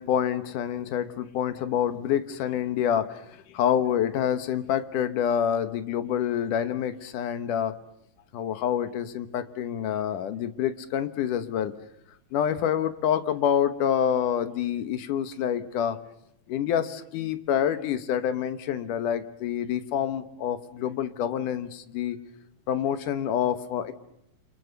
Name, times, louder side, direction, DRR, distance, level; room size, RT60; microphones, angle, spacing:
voice 1, 0.0-3.2 3.5-7.7 8.3-11.7 12.3-16.0 16.5-22.2 22.7-23.9, left 9 dB, 75° left, 11 dB, 2.7 m, -27 dB
29.5 x 26.0 x 7.0 m, 0.80 s
omnidirectional pair, 3.7 m